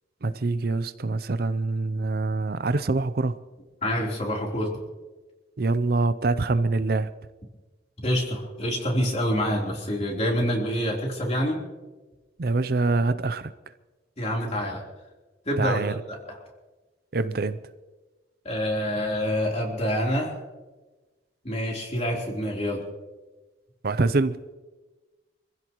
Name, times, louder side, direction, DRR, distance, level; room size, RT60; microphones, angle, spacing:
voice 1, 0.2-3.4 5.6-7.1 12.4-13.5 15.6-15.9 17.1-17.6 23.8-24.4, right 3 dB, 55° right, 13 dB, 0.6 m, -25 dB
voice 2, 3.8-4.7 8.0-11.6 14.2-14.8 15.5-16.0 16.3-16.4 18.5-20.3 21.4-22.8, equal, 35° left, -1 dB, 3.6 m, -26 dB
26.0 x 15.5 x 3.1 m, 1.2 s
head